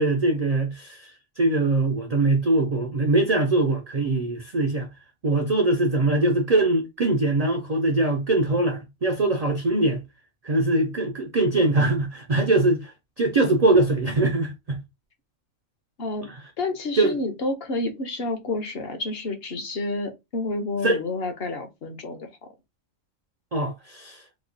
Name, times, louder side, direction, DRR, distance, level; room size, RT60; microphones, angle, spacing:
voice 1, 0.0-4.9 5.2-10.0 10.4-14.8 16.2-16.4 17.0-17.1 20.8-21.0 23.5-24.2, right 2 dB, 60° right, 0.4 m, -22 dB
voice 2, 16.0-16.3 16.6-22.5, left 2 dB, 55° left, 0.9 m, -29 dB
3.1 x 2.1 x 3.7 m
omnidirectional pair, 1.4 m